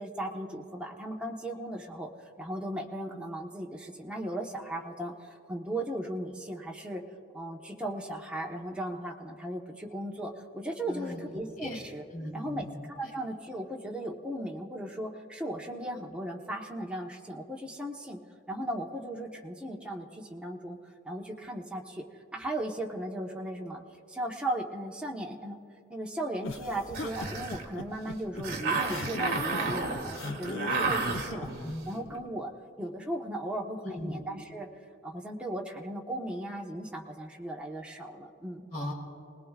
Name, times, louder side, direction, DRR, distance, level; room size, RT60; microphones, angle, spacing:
voice 1, 0.0-2.1 2.4-7.0 7.3-12.0 12.3-18.2 18.5-20.8 21.0-22.0 22.3-23.8 24.1-25.6 25.9-31.5 31.8-32.5 32.8-34.7 35.0-38.6, right 1 dB, 5° right, -2 dB, 1.2 m, -37 dB
voice 2, 10.9-11.2 11.6-11.8 12.1-12.8 31.3-31.9 32.8-32.9 33.8-34.1 38.7-38.9, left 1 dB, 45° left, -3 dB, 4.2 m, -38 dB
sound 1, 26.4-31.8, left 3 dB, 75° left, 0.7 m, -39 dB
sound 2, 26.9-32.2, right 4 dB, 50° right, 1.9 m, -32 dB
29.0 x 19.5 x 2.5 m, 2.6 s
head